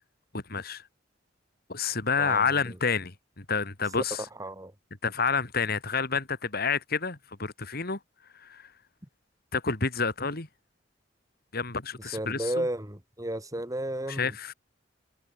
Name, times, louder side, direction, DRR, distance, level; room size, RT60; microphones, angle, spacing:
voice 1, 0.3-0.8 1.7-4.3 5.0-8.0 8.3-8.7 9.5-10.5 11.5-12.7 14.1-14.5, left 5 dB, 55° left, 2.8 m, -29 dB
voice 2, 4.4-4.7 12.1-14.3, right 1 dB, 20° right, 4.5 m, -33 dB
head